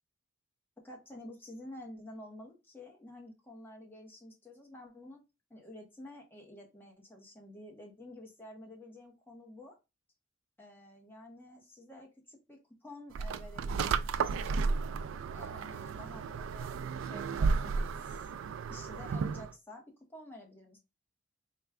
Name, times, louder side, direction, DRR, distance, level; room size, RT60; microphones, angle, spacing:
voice 1, 0.8-5.2 5.5-9.8 10.6-14.1 15.3-16.8 17.0-18.3 18.7-20.8, left 1 dB, 10° left, 0 dB, 1.0 m, -50 dB
sound 1, 13.1-19.5, right 5 dB, 80° right, 0.3 m, -33 dB
5.0 x 2.3 x 3.4 m, 0.26 s
head